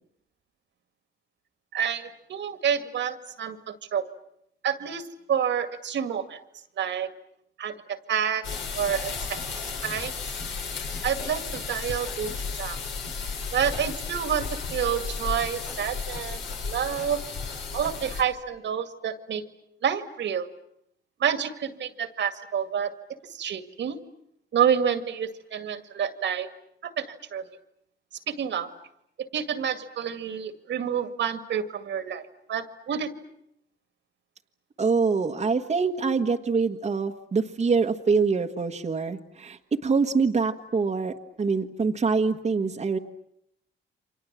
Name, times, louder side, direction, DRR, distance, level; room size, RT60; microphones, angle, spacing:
voice 1, 1.7-4.1 4.6-6.4 6.8-7.1 7.6-8.5 8.7-9.4 9.8-10.1 11.0-12.8 13.5-17.2 17.7-19.4 19.8-20.5 21.2-22.9 23.3-24.0 24.5-26.5 26.8-27.4 28.3-28.7 29.2-32.2 32.5-33.1, right 8 dB, 65° right, 9 dB, 2.1 m, -28 dB
sound 1, 8.4-18.2, left 5 dB, 70° left, 4.9 m, -33 dB
voice 2, 34.8-43.0, right 4 dB, 35° right, 3 dB, 1.5 m, -25 dB
29.5 x 25.0 x 7.5 m, 0.77 s
cardioid pair, 90°, 20 cm